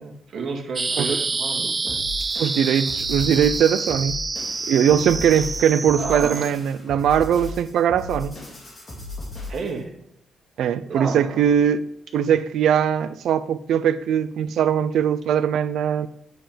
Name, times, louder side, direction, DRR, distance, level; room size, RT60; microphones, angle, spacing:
voice 1, 0.0-2.1 6.0-6.5 9.5-9.9 10.9-11.4, right 4 dB, 60° right, 2.0 m, -31 dB
sound 1, 0.8-6.5, right 4 dB, 25° right, 0.5 m, -27 dB
sound 2, 1.9-9.8, left 2 dB, 25° left, 3.8 m, -36 dB
voice 2, 2.4-4.2 4.7-8.4 10.6-11.8 12.1-16.1, right 8 dB, 85° right, 0.5 m, -20 dB
9.3 x 7.5 x 5.1 m
wide cardioid pair, 145°, 0 cm